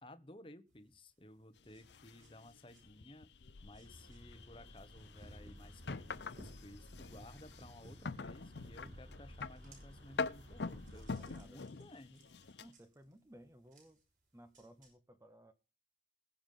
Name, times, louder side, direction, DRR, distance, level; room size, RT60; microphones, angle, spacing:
voice 1, 0.0-3.3 3.6-12.3, left 1 dB, 30° left, 11 dB, 1.1 m, -56 dB
sound 1, 0.7-14.9, right 1 dB, 45° right, 5.9 m, -64 dB
sound 2, 1.6-12.7, left 4 dB, 85° left, 0.7 m, -46 dB
sound 3, 3.8-11.4, equal, 85° right, 6.3 m, -55 dB
voice 2, 10.9-11.6 12.6-14.0 14.3-15.5, right 1 dB, 15° right, 9 dB, 1.1 m, -59 dB
20.5 x 7.1 x 3.9 m, 0.32 s
head